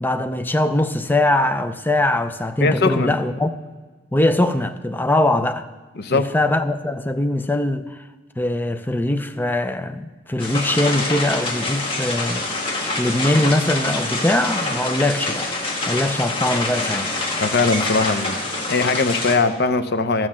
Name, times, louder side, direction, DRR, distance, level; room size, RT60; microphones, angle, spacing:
voice 1, 0.0-3.5 4.1-5.7 6.1-8.0 8.4-12.5 13.0-15.5 15.9-17.1, left 1 dB, 10° left, 0.5 m, -21 dB
voice 2, 2.6-3.1 6.0-6.3 17.4-18.4 18.7-20.3, left 3 dB, 60° left, 0.6 m, -20 dB
sound 1, 10.4-19.4, left 2 dB, 30° left, 1.6 m, -25 dB
13.0 x 6.2 x 7.4 m
head